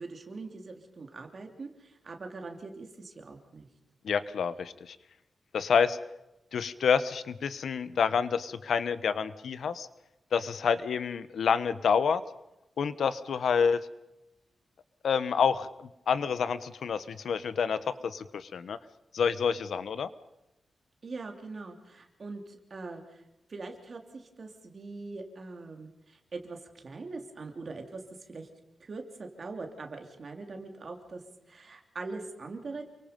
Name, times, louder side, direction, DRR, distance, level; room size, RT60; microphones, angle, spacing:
voice 1, 0.0-3.7 21.0-23.2 23.5-28.0 28.3-28.5 28.8-32.8, right 3 dB, 40° right, 4 dB, 3.1 m, -42 dB
voice 2, 4.0-5.0 5.5-6.0 6.5-9.9 10.3-12.2 12.8-13.8 15.0-15.7 16.1-18.8 19.1-20.1, left 6 dB, 70° left, 14 dB, 1.0 m, -28 dB
29.0 x 24.0 x 5.3 m, 0.96 s
wide cardioid pair, 175°, 0 cm